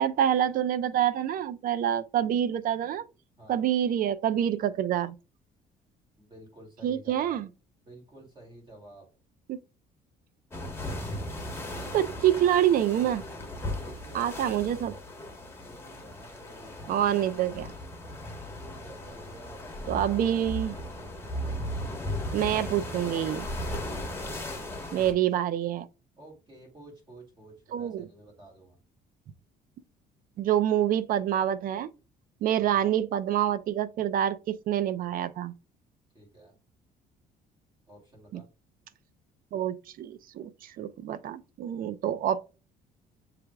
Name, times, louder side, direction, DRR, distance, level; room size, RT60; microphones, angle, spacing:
voice 1, 0.0-3.0 3.5-5.1 6.8-7.5 9.5-9.6 11.9-13.2 14.1-14.9 16.9-17.7 19.9-20.7 22.3-23.5 24.9-25.9 27.7-28.1 30.4-31.9 32.4-35.5 38.3-38.4 39.5-42.4, right 10 dB, 55° right, 0.5 m, -27 dB
voice 2, 6.2-7.4 7.9-9.1 13.8-14.8 15.6-17.0 17.4-17.7 18.6-20.0 24.2-25.2 26.2-28.8 36.1-36.5 37.9-38.5, right 1 dB, 30° right, 2.4 m, -51 dB
sound 1, 10.5-25.1, left 1 dB, 15° left, 1.3 m, -37 dB
6.9 x 3.3 x 2.3 m
cardioid pair, 110°, 17 cm